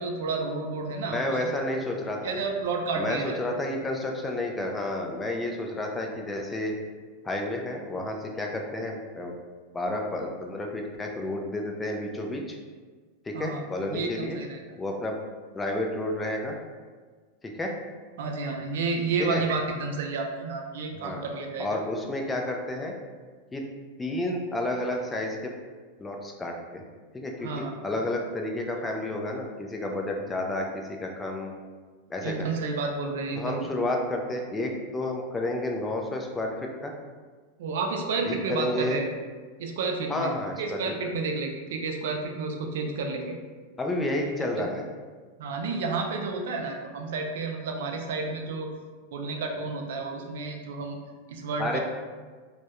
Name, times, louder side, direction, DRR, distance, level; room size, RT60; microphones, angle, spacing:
voice 1, 0.0-1.5 2.2-3.4 13.3-14.8 18.2-21.8 27.4-27.7 32.2-33.8 37.6-39.1 39.6-40.3 40.6-43.4 44.6-44.7 45.4-48.7 49.1-51.0 51.3-51.8, right 4 dB, 75° right, 2 dB, 0.3 m, -31 dB
voice 2, 1.1-2.4 2.9-6.7 7.2-9.3 9.7-12.6 13.3-14.4 14.8-15.2 15.5-16.6 17.4-17.8 19.2-19.4 21.0-21.2 21.6-22.9 23.5-23.6 24.0-25.5 26.0-26.8 27.1-31.5 32.1-32.5 33.3-36.9 38.2-39.0 40.1-40.8 43.8-44.9 51.6-51.8, left 1 dB, 15° left, 1 dB, 0.3 m, -31 dB
2.2 x 2.0 x 2.8 m, 1.4 s
supercardioid pair, 130°, 0 cm